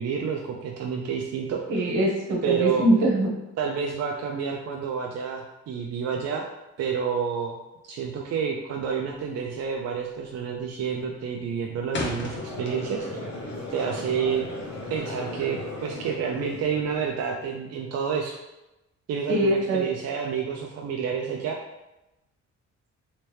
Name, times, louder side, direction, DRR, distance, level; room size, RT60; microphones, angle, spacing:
voice 1, 0.0-1.6 2.4-2.8 3.6-6.5 6.8-7.6 7.8-13.2 13.7-14.5 14.9-18.4 19.1-21.6, right 6 dB, 55° right, 1 dB, 0.5 m, -29 dB
voice 2, 1.7-3.3 19.3-19.8, right 1 dB, 75° right, -2 dB, 1.0 m, -22 dB
sound 1, 8.7-9.1 9.4-9.8 10.1-10.5 10.9-13.2 13.5-15.0, left 2 dB, 40° left, 0.8 m, -36 dB
Conversation / Crowd, 11.9-17.2, left 1 dB, 60° left, 1.2 m, -37 dB
3.2 x 3.0 x 3.1 m, 0.96 s
cardioid pair, 90°, 30 cm